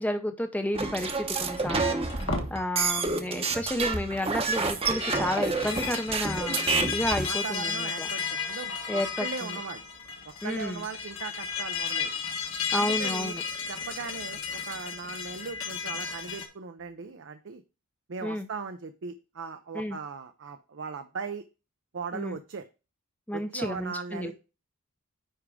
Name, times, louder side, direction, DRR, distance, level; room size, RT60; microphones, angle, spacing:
voice 1, 0.0-2.1 2.5-8.1 8.9-9.6 10.4-10.9 12.7-13.4 18.2-18.5 19.7-20.0 22.1-22.4 23.3-24.3, left 1 dB, 5° left, 6 dB, 0.6 m, -31 dB
sound 1, 0.7-7.3, right 4 dB, 25° right, 0.9 m, -29 dB
sound 2, 1.7-2.5 4.3-16.5, left 5 dB, 65° left, 1.7 m, -34 dB
voice 2, 7.2-9.8 10.4-12.1 12.7-13.4 13.7-17.6 18.1-21.4 21.9-22.7 23.3-24.3, right 5 dB, 60° right, 7 dB, 0.6 m, -38 dB
10.0 x 3.5 x 4.9 m, 0.32 s
head